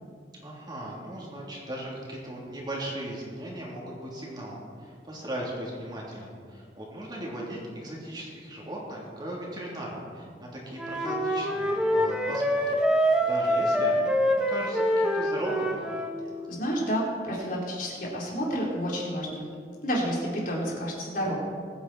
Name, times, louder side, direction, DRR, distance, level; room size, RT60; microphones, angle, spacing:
voice 1, 0.4-15.8, right 1 dB, 25° right, -4 dB, 3.2 m, -38 dB
Wind instrument woodwind instrument, 10.8-16.1, equal, 5° right, 1.2 m, -25 dB
voice 2, 16.5-19.5 19.8-21.4, equal, 50° left, -4 dB, 3.8 m, -30 dB
22.0 x 9.4 x 4.3 m, 2.2 s
head